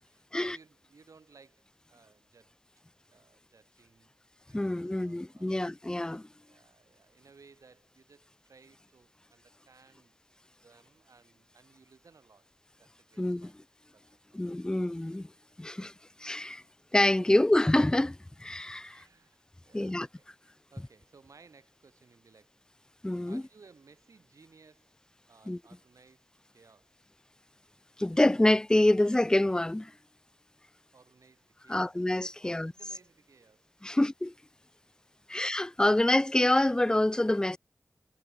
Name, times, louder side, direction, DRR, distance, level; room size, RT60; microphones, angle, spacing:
voice 1, 0.0-2.5 3.1-4.1 4.5-5.5 6.4-10.2 10.6-12.5 12.8-13.6 13.9-14.4 16.5-16.7 17.2-17.3 18.8-22.6 23.3-25.0 25.3-27.1 30.9-32.0 32.4-34.1 34.7-34.9 35.3-35.6 35.9-36.1, right 4 dB, 85° right, 4.4 m, -60 dB
voice 2, 4.5-6.3 13.2-13.5 14.3-15.3 15.6-15.9 16.2-16.6 16.9-19.0 19.7-20.1 23.0-23.4 25.5-25.6 28.0-29.9 31.7-32.7 33.8-34.3 35.3-37.6, left 1 dB, 15° left, 0.5 m, -26 dB
cardioid pair, 50°, 5 cm